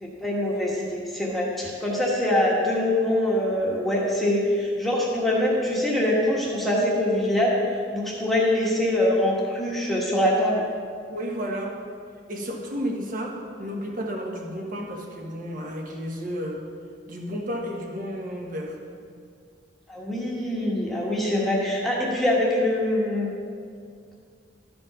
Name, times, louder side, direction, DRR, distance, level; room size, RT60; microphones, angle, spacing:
voice 1, 0.0-7.6 7.9-10.6 19.9-23.3, left 1 dB, ahead, -5 dB, 1.3 m, -24 dB
voice 2, 11.1-11.8 12.3-16.6 17.1-18.8, equal, 45° right, 0 dB, 1.4 m, -32 dB
12.5 x 5.2 x 6.8 m, 2.2 s
head